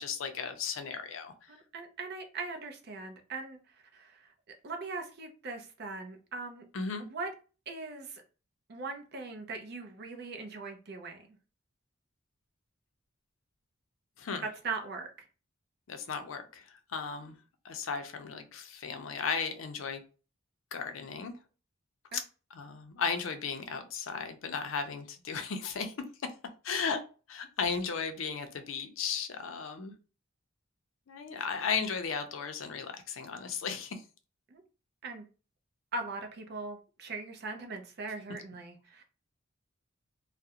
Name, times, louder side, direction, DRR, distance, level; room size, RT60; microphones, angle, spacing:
voice 1, 0.0-1.3 6.7-7.1 14.2-14.5 15.9-17.4 17.6-20.0 20.7-21.3 22.1-22.2 22.5-25.9 26.6-27.0 27.3-29.9 31.1-34.0, left 5 dB, 75° left, 0.5 m, -35 dB
voice 2, 1.5-3.6 3.9-4.3 4.6-6.6 7.0-7.3 7.7-8.2 8.7-11.3 14.6-15.1 34.5-34.6 35.0-35.2 35.9-39.0, right 3 dB, 50° right, 0.5 m, -40 dB
2.4 x 2.0 x 2.8 m
head